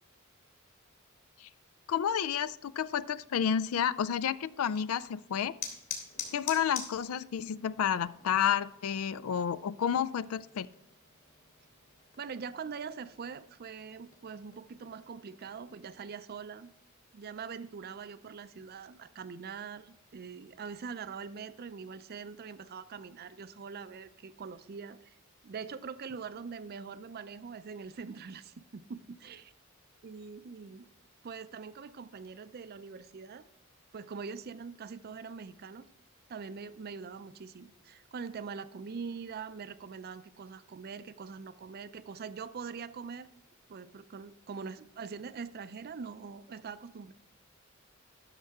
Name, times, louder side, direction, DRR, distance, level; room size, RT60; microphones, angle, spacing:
voice 1, 1.9-5.5 6.3-10.7, left 8 dB, 85° left, 18 dB, 0.4 m, -30 dB
sound 1, 4.6-15.7, left 6 dB, 45° left, 2.3 m, -47 dB
voice 2, 12.2-16.7 17.1-25.2 25.4-29.5 30.0-30.9 31.2-33.5 33.9-35.9 36.3-43.3 43.7-47.1, right 5 dB, 45° right, 14 dB, 0.4 m, -43 dB
12.0 x 6.6 x 3.5 m, 0.81 s
head